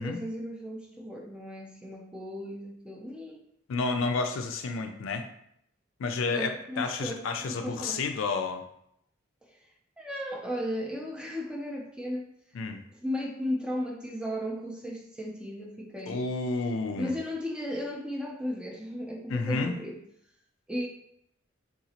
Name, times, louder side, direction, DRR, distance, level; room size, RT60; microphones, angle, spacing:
voice 1, 0.0-3.4 6.3-8.0 9.4-9.6 10.0-12.3 12.9-16.2 17.0-20.0 20.7-20.9, equal, 5° right, -1 dB, 0.4 m, -35 dB
voice 2, 3.7-5.3 6.0-8.6 12.5-12.8 16.1-17.2 19.3-19.8, left 4 dB, 75° left, 6 dB, 0.4 m, -30 dB
3.8 x 2.4 x 2.8 m, 0.73 s
head